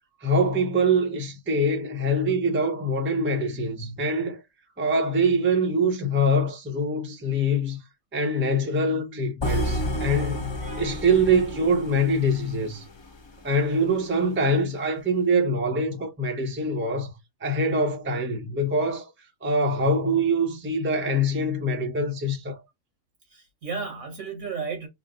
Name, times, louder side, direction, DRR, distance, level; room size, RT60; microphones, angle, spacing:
voice 1, 0.2-4.4 4.8-7.8 8.1-10.5 10.8-12.8 13.4-17.1 17.4-19.1 19.4-22.6, right 1 dB, 10° right, 0.6 m, -24 dB
sound 1, 9.4-13.5, left 1 dB, 30° left, 0.5 m, -31 dB
voice 2, 10.6-10.9 23.3-24.9, right 5 dB, 80° right, 1.9 m, -34 dB
3.9 x 2.1 x 3.7 m
omnidirectional pair, 1.4 m